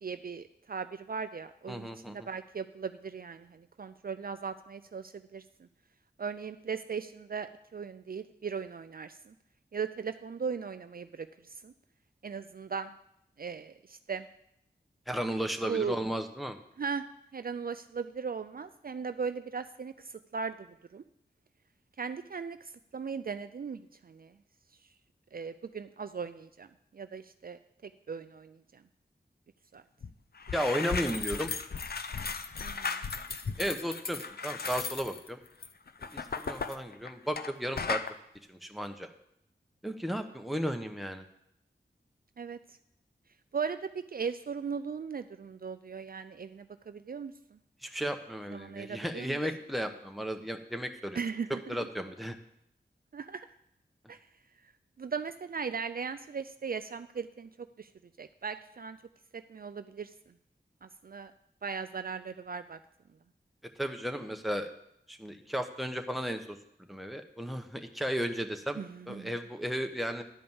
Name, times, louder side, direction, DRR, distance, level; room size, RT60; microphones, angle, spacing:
voice 1, 0.0-5.4 6.2-9.3 9.7-11.3 11.6-11.7 12.2-12.9 13.4-14.3 15.7-16.0 16.8-17.0 17.3-20.7 20.9-21.0 22.0-24.3 25.3-26.7 26.9-27.6 28.1-28.8 29.7-29.8 32.6-33.0 42.4-42.6 43.5-47.6 48.5-49.4 51.1-51.8 53.1-53.5 54.1-54.2 55.0-57.9 58.2-59.0 59.3-60.1 60.8-61.3 61.6-62.8 68.8-69.3, right 6 dB, 55° right, 11 dB, 0.4 m, -38 dB
voice 2, 1.7-2.3 15.1-16.6 30.5-31.5 33.6-35.4 36.1-38.0 38.5-39.1 39.8-41.2 47.8-51.2 51.7-52.3 63.8-64.7 65.1-66.6 66.9-70.2, equal, ahead, 5 dB, 1.0 m, -34 dB
sound 1, 30.0-30.1 30.4-37.5 37.8-38.1, left 5 dB, 60° left, 0.6 m, -36 dB
11.0 x 5.1 x 7.1 m, 0.77 s
wide cardioid pair, 60°, 19 cm